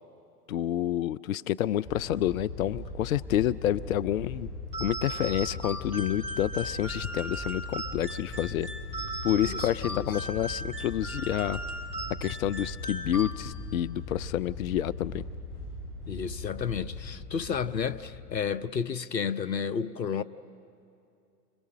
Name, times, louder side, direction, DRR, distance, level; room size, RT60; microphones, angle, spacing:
voice 1, 0.5-4.5 4.8-8.7 9.2-11.6 12.2-15.2, left 12 dB, 55° left, 0.5 m, -29 dB
sound 1, 1.8-18.4, left 2 dB, 40° left, 5.5 m, -40 dB
sound 2, 4.7-13.8, right 1 dB, 70° right, 2.7 m, -38 dB
voice 2, 9.4-10.1 16.0-20.2, left 6 dB, 85° left, 0.8 m, -32 dB
30.0 x 25.5 x 6.6 m
figure-of-eight pair, 100°, 49 cm